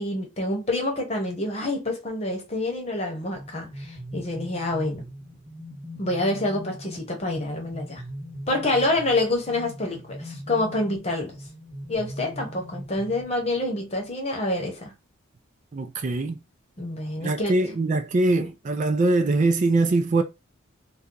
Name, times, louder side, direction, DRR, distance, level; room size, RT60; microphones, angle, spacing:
voice 1, 0.0-5.0 6.0-8.0 8.5-11.4 11.9-14.9 16.8-17.7 18.4-18.5, left 2 dB, 30° left, 1.0 m, -27 dB
sound 1, 3.2-13.7, equal, 15° right, 1.3 m, -40 dB
voice 2, 15.7-16.4 17.2-20.2, right 2 dB, 35° right, 0.4 m, -22 dB
2.8 x 2.2 x 3.8 m
head